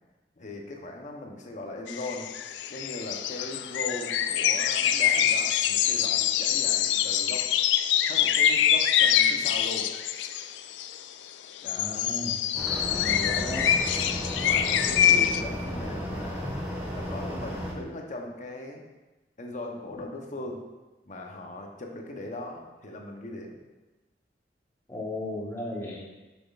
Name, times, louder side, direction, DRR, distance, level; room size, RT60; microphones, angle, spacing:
voice 1, 0.4-2.3 2.7-7.5 8.1-9.9 11.6-12.1 13.0-13.8 14.4-16.5 16.9-18.8 19.4-20.6 21.1-23.6 26.0-26.2, left 2 dB, 45° left, 2 dB, 0.8 m, -39 dB
sound 1, 1.9-11.0 11.6-15.4, left 9 dB, 75° left, 0.3 m, -25 dB
voice 2, 11.8-12.3 12.9-13.7 20.0-20.1 24.9-26.2, left 1 dB, 15° left, -4 dB, 1.2 m, -35 dB
sound 2, 12.5-17.7, equal, 10° right, 1.8 m, -34 dB
6.6 x 6.1 x 2.4 m, 1.1 s
head